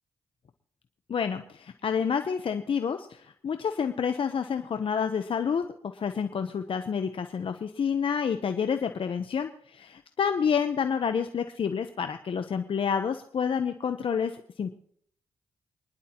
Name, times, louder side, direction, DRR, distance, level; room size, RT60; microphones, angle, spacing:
voice 1, 1.1-14.7, left 7 dB, 60° left, 8 dB, 0.9 m, -29 dB
25.5 x 11.0 x 3.0 m, 0.64 s
supercardioid pair, 45°, 10 cm